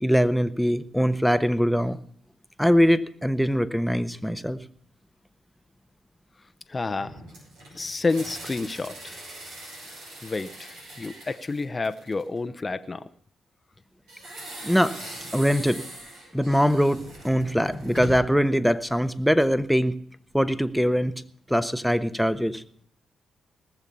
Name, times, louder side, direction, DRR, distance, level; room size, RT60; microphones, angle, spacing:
voice 1, 0.0-2.0 2.6-4.6 14.6-14.9 15.3-15.8 16.3-19.9 20.3-21.1 21.5-22.6, equal, ahead, 11 dB, 1.1 m, -22 dB
voice 2, 6.7-7.2 7.7-9.2 10.2-13.0, left 3 dB, 35° left, 10 dB, 0.8 m, -29 dB
sound 1, 7.0-12.4 14.1-18.4, right 1 dB, 85° right, 6.0 m, -40 dB
19.0 x 7.2 x 6.9 m, 0.63 s
hypercardioid pair, 45°, 0 cm